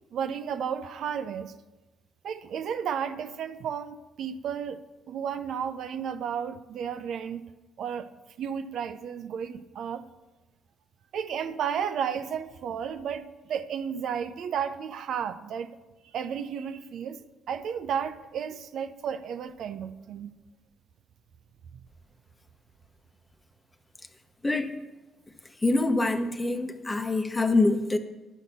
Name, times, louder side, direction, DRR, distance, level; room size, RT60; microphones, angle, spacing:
voice 1, 0.1-1.5 2.2-7.4 7.8-8.1 8.4-10.1 11.1-15.7 16.0-20.3, right 7 dB, 70° right, 0.5 m, -33 dB
voice 2, 24.4-24.7 25.6-28.0, left 2 dB, 20° left, 0.9 m, -25 dB
11.0 x 5.9 x 6.8 m
cardioid pair, 90°, 0 cm